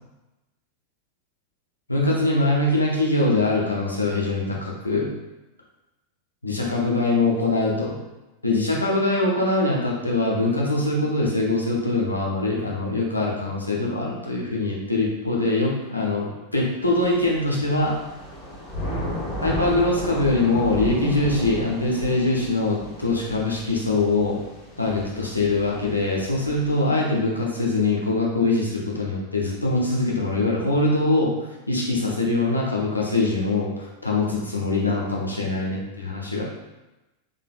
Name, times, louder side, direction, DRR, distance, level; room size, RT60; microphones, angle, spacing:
voice 1, 1.9-5.1 6.4-7.9 8.4-17.9 19.4-24.4 24.8-31.3 31.7-35.8 36.3-36.5, left 2 dB, 85° left, -3 dB, 0.8 m, -23 dB
Thunder / Rain, 16.9-26.8, equal, 25° left, 1.4 m, -34 dB
3.6 x 3.6 x 2.3 m, 1.0 s
figure-of-eight pair, 90°, 0 cm